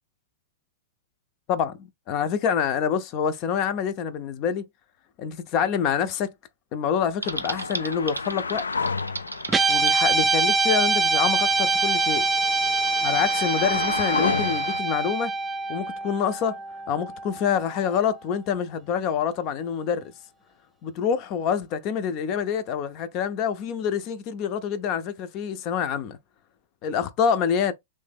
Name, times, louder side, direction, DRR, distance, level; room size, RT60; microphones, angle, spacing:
voice 1, 1.5-4.6 5.2-6.3 6.7-8.6 9.7-12.3 13.0-15.3 15.7-16.6 16.9-20.1 20.8-26.2 26.8-27.7, left 7 dB, 40° left, 0.6 m, -26 dB
sound 1, 7.2-14.8, left 4 dB, 80° left, 0.3 m, -32 dB
Typing, 7.2-10.0, right 3 dB, 85° right, 0.5 m, -34 dB
Guitar, 9.5-18.0, right 4 dB, 15° right, 0.5 m, -24 dB
3.3 x 3.2 x 3.5 m
figure-of-eight pair, 100°, 0 cm